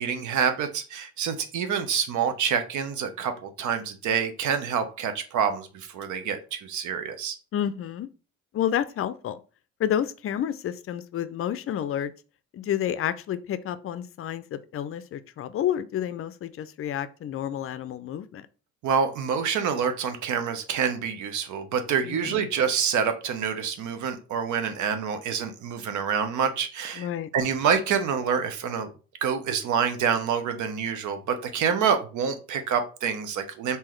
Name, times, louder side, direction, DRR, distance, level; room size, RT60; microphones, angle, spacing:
voice 1, 0.0-7.4 18.8-27.1 27.3-28.9 29.2-33.8, right 7 dB, 70° right, 0.7 m, -27 dB
voice 2, 7.5-8.1 8.5-9.4 9.8-12.1 12.5-18.5 22.0-22.5 27.0-27.3, left 10 dB, 45° left, 0.4 m, -30 dB
3.7 x 2.8 x 3.0 m
cardioid pair, 80°, 31 cm